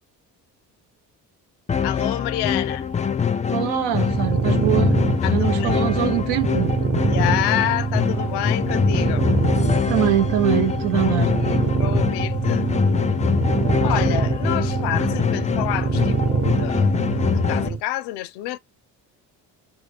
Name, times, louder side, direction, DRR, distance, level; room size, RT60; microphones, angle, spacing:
sound 1, 1.7-17.7, left 7 dB, 20° left, 0.3 m, -24 dB
voice 1, 1.8-2.9 5.2-5.8 7.1-9.2 11.0-12.7 13.8-18.6, left 15 dB, 85° left, 0.5 m, -29 dB
voice 2, 3.5-4.9 5.3-6.7 9.9-11.3, right 12 dB, 85° right, 0.7 m, -23 dB
sound 2, 4.0-17.8, right 4 dB, 35° right, 0.9 m, -24 dB
4.4 x 2.2 x 3.3 m
supercardioid pair, 70°, 40 cm